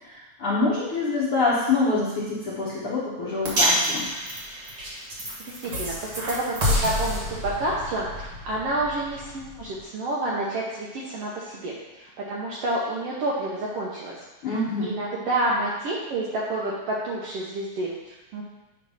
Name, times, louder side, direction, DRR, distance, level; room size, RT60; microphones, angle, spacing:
voice 1, 0.0-4.1 14.4-14.9, left 3 dB, 65° left, -7 dB, 1.4 m, -25 dB
sound 1, 3.4-9.8, equal, 45° right, 1.5 m, -28 dB
voice 2, 5.6-14.2 14.8-18.4, right 2 dB, 70° right, -4 dB, 1.4 m, -29 dB
8.7 x 3.2 x 5.5 m, 1.0 s
omnidirectional pair, 3.7 m